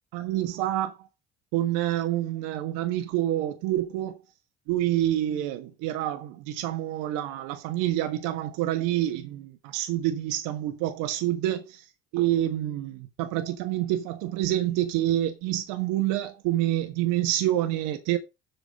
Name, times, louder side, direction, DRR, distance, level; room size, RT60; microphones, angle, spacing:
voice 1, 0.1-1.1 1.5-4.2 4.7-11.8 12.1-18.2, right 13 dB, 70° right, 1.5 m, -27 dB
8.1 x 6.1 x 6.4 m
hypercardioid pair, 65°, 32 cm